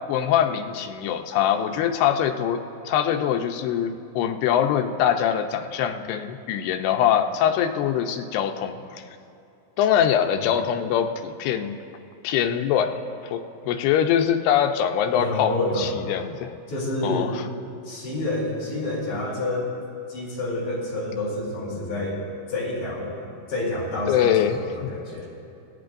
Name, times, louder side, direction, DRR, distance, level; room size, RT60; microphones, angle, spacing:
voice 1, 0.1-9.0 9.8-11.8 12.2-16.5 17.0-17.5 24.1-24.9, left 9 dB, 85° left, 5 dB, 2.7 m, -23 dB
voice 2, 15.2-15.9 16.7-17.3 17.8-19.7 20.1-22.2 22.5-23.1 23.5-25.3, left 2 dB, 50° left, -5 dB, 5.5 m, -28 dB
26.0 x 17.0 x 2.6 m, 2.6 s
omnidirectional pair, 4.7 m